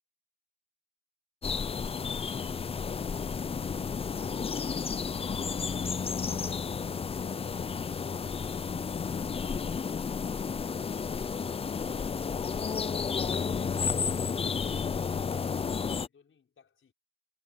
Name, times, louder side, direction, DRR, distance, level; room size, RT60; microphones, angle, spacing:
sound 1, 1.4-16.1, left 5 dB, 20° left, 0.4 m, -32 dB
voice 1, 14.6-16.9, left 6 dB, 45° left, 5.4 m, -61 dB
cardioid pair, 90°, 30 cm